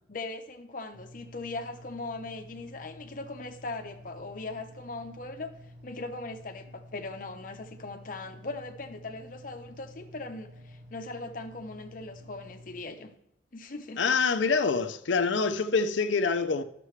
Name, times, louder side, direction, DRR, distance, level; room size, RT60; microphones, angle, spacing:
voice 1, 0.1-5.5 5.8-13.1 13.5-14.0, left 3 dB, 45° left, 0.8 m, -39 dB
sound 1, 0.9-12.8, equal, 80° right, 1.3 m, -50 dB
voice 2, 14.0-16.6, left 4 dB, 80° left, 0.6 m, -26 dB
11.0 x 6.8 x 3.2 m
head